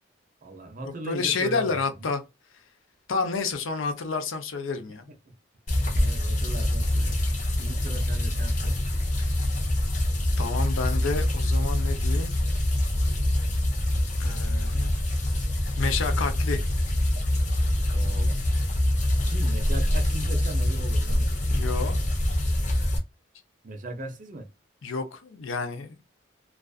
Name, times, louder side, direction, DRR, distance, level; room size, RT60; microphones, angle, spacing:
voice 1, 0.4-2.1 5.3-5.4 6.0-7.2 7.6-8.8 17.9-18.4 19.3-21.3 23.6-24.5, right 1 dB, 40° right, 0.5 m, -38 dB
voice 2, 1.1-2.2 3.1-5.0 9.2-9.3 10.4-12.4 14.2-15.0 15.8-16.6 21.5-22.0 24.8-26.0, left 4 dB, 90° left, 0.5 m, -29 dB
sound 1, 5.7-23.0, left 1 dB, 40° left, 0.6 m, -25 dB
2.4 x 2.3 x 2.3 m
head